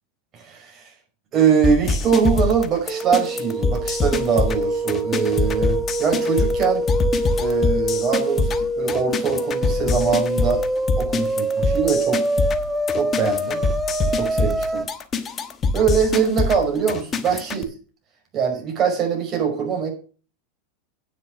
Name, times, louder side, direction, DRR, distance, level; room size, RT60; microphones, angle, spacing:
voice 1, 0.3-0.9 1.3-6.8 7.3-10.6 11.0-12.2 13.0-13.6 14.1-14.9 15.7-17.7 18.3-19.9, right 6 dB, 35° right, 2 dB, 5.3 m, -22 dB
sound 1, 1.6-17.6, left 4 dB, 30° left, 1.1 m, -24 dB
sound 2, 2.9-14.9, right 1 dB, 10° right, 1.3 m, -25 dB
9.3 x 6.4 x 6.3 m, 0.38 s
hypercardioid pair, 90°, 0 cm